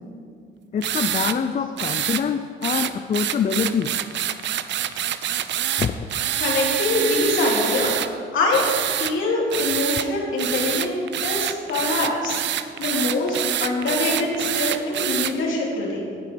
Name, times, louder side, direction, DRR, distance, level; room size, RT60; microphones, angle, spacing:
voice 1, 0.7-3.9 5.8-5.9, left 6 dB, 40° left, 9 dB, 0.5 m, -25 dB
sound 1, 0.8-1.4 1.8-2.2 2.6-8.1 8.5-9.1 9.5-10.1 10.4-15.3, right 11 dB, 65° right, 0.6 m, -26 dB
voice 2, 6.4-8.0 8.3-11.0 11.2-16.0, left 2 dB, 80° left, -2 dB, 2.8 m, -24 dB
17.0 x 6.1 x 5.2 m, 2.2 s
cardioid pair, 90°, 20 cm